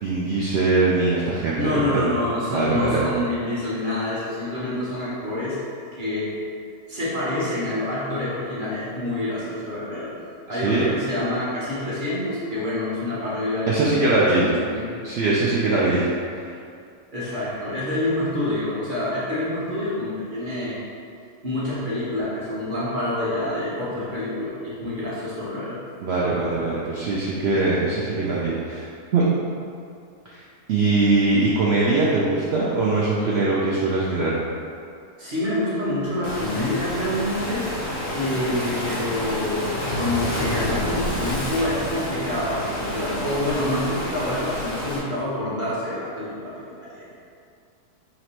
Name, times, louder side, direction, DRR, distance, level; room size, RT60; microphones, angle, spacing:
voice 1, 0.0-2.0 2.5-3.0 10.5-10.8 13.7-14.5 15.0-16.5 26.0-28.9 29.1-29.2 30.3-30.4 30.7-34.3, right 3 dB, 75° right, -6 dB, 0.6 m, -22 dB
voice 2, 1.6-5.6 6.0-6.3 6.9-10.1 10.5-14.9 17.1-20.8 21.4-25.8 35.2-37.7 38.1-47.0, left 1 dB, 40° right, -9 dB, 0.9 m, -27 dB
Waves surf, 36.2-45.0, left 1 dB, 40° left, 0.4 m, -29 dB
2.9 x 2.9 x 4.4 m, 2.4 s
omnidirectional pair, 1.6 m